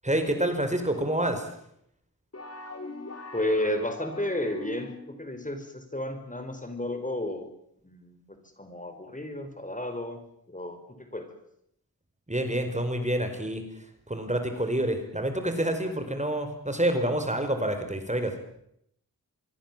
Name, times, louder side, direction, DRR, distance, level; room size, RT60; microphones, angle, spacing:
voice 1, 0.0-1.5 12.3-13.6 14.1-18.3, right 1 dB, 20° right, 7 dB, 4.8 m, -27 dB
sound 1, 2.3-5.2, left 2 dB, 45° left, 4.7 m, -41 dB
voice 2, 3.3-7.5 7.8-10.2 10.5-11.4, left 1 dB, 20° left, 7 dB, 4.6 m, -32 dB
26.0 x 22.5 x 7.5 m, 0.74 s
wide cardioid pair, 70°, 35 cm